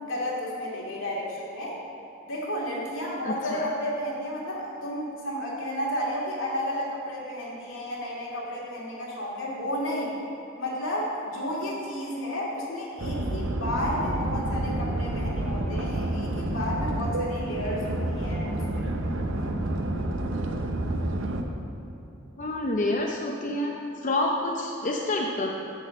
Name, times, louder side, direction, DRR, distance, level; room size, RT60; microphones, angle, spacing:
voice 1, 0.0-1.8 2.2-10.1 10.6-18.9, equal, 75° left, -4 dB, 2.3 m, -32 dB
voice 2, 3.2-3.6 22.4-23.7 24.0-25.5, left 2 dB, 40° left, -1 dB, 0.6 m, -28 dB
sound 1, 13.0-21.4, right 1 dB, 70° right, 0.7 m, -29 dB
10.5 x 4.2 x 7.6 m, 3.0 s
head